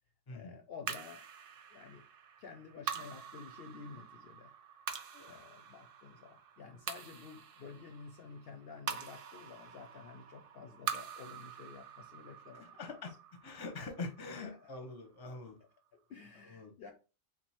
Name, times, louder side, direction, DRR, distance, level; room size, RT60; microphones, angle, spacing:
voice 1, 0.3-1.3 1.7-2.1 2.4-4.5 5.3-13.2 13.8-13.9 14.4-14.7 15.9-16.9, left 5 dB, 60° left, 0.7 m, -51 dB
sound 1, 0.9-15.4, right 8 dB, 60° right, 0.6 m, -46 dB
voice 2, 12.6-13.1 13.4-15.6 16.5-16.7, left 3 dB, 25° left, 0.6 m, -44 dB
3.6 x 2.6 x 4.2 m
omnidirectional pair, 1.4 m